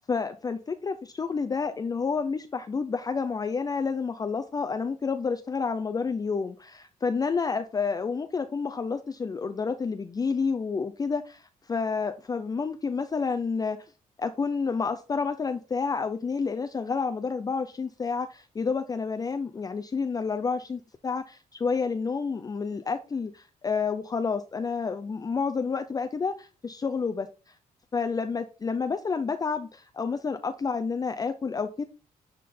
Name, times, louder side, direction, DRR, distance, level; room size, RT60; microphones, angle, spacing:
voice 1, 0.1-13.8 14.2-27.5 27.9-31.8, left 5 dB, 25° left, 8 dB, 0.5 m, -29 dB
10.0 x 3.7 x 4.2 m, 0.34 s
cardioid pair, 115°, 14 cm